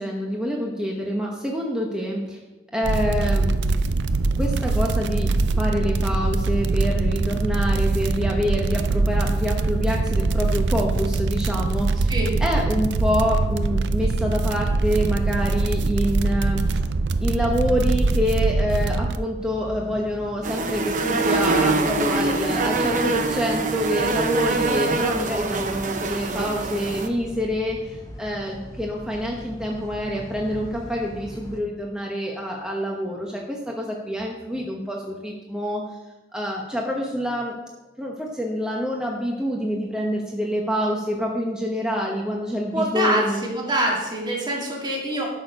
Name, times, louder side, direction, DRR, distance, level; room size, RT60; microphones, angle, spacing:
voice 1, 0.0-2.4 2.7-3.6 4.4-12.1 12.4-16.6 17.2-35.8 36.3-37.5 38.0-43.4, equal, 5° right, -1 dB, 1.0 m, -26 dB
sound 1, 2.8-19.2, right 3 dB, 85° right, 0.5 m, -23 dB
sound 2, 19.4-31.6, equal, 20° left, 1.0 m, -40 dB
sound 3, 20.4-27.1, right 3 dB, 45° right, 0.8 m, -24 dB
voice 2, 42.7-45.3, right 1 dB, 25° right, -3 dB, 2.3 m, -25 dB
12.0 x 6.5 x 5.4 m, 1.1 s
head